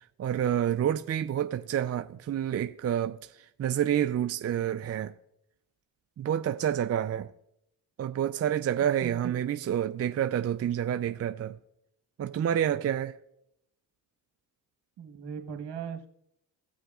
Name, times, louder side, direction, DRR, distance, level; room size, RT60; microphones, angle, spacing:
voice 1, 0.2-3.2 3.6-5.1 6.2-7.3 8.0-11.6 12.2-13.1, right 10 dB, 35° right, 0.5 m, -28 dB
voice 2, 9.0-9.3 15.0-16.1, right 7 dB, 65° right, 1.4 m, -38 dB
16.5 x 6.4 x 2.4 m
supercardioid pair, 60°, 44 cm